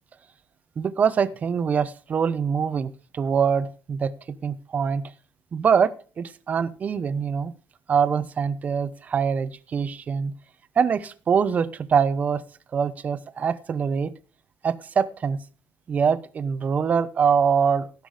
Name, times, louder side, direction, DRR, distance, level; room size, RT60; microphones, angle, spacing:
voice 1, 0.8-5.0 5.5-7.5 7.9-10.3 10.8-12.4 12.7-14.1 14.6-15.4 15.9-17.9, right 6 dB, 35° right, 14 dB, 0.9 m, -24 dB
17.0 x 6.1 x 4.9 m, 0.37 s
cardioid pair, 140°, 5 cm